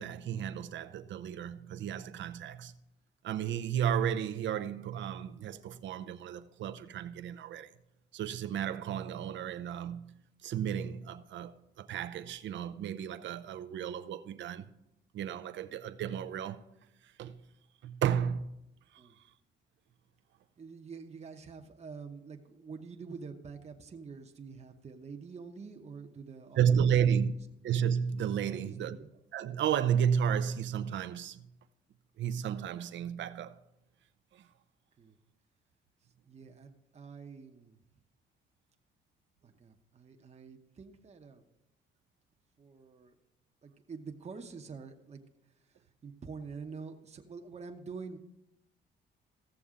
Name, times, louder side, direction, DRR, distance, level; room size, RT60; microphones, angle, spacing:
voice 1, 0.0-2.7 3.2-7.7 8.1-14.7 15.1-16.6 17.0-17.4 17.8-18.5 18.9-19.0 26.6-27.3 27.6-29.0 29.3-31.5 32.2-33.6 34.3-34.5, right 8 dB, 70° right, 0.6 m, -32 dB
voice 2, 20.6-26.9 27.2-27.3 28.5-29.1 35.0-35.2 36.2-37.8 39.4-41.5 42.6-43.2 43.6-45.2 45.7-48.2, right 5 dB, 35° right, 1.0 m, -47 dB
15.5 x 6.9 x 3.7 m
cardioid pair, 90°, 20 cm